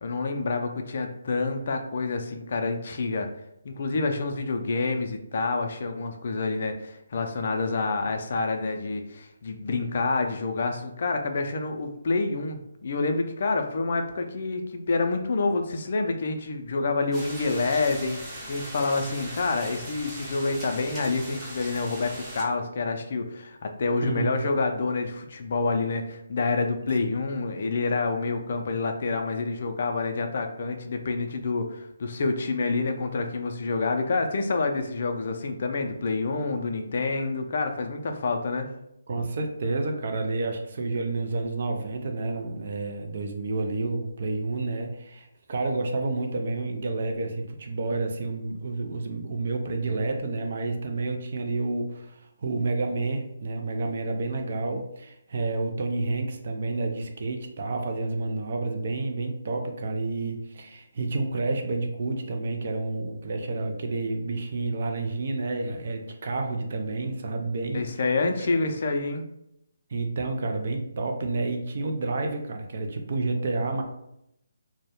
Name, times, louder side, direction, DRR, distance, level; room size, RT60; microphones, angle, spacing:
voice 1, 0.0-3.3 3.6-18.2 18.5-38.7 67.7-69.2, left 3 dB, 50° left, 5 dB, 0.4 m, -28 dB
sound 1, 17.1-22.4, right 1 dB, 10° right, 0.6 m, -39 dB
voice 2, 24.0-24.4 39.1-67.8 68.4-68.5 69.9-73.8, right 3 dB, 50° right, 4 dB, 0.4 m, -29 dB
2.2 x 2.1 x 2.9 m, 0.80 s
figure-of-eight pair, 145°, 0 cm